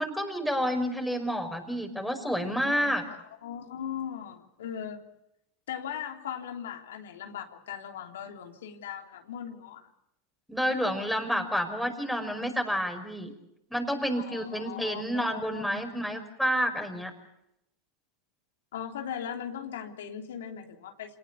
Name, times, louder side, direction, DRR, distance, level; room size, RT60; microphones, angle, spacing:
voice 1, 0.0-3.0 10.5-13.3 13.7-17.1, equal, ahead, 5 dB, 5.6 m, -29 dB
voice 2, 3.4-5.0 5.7-9.8 14.1-15.9 18.7-21.2, left 9 dB, 80° left, 3 dB, 3.2 m, -39 dB
27.0 x 19.0 x 8.5 m, 0.83 s
hypercardioid pair, 100°, 0 cm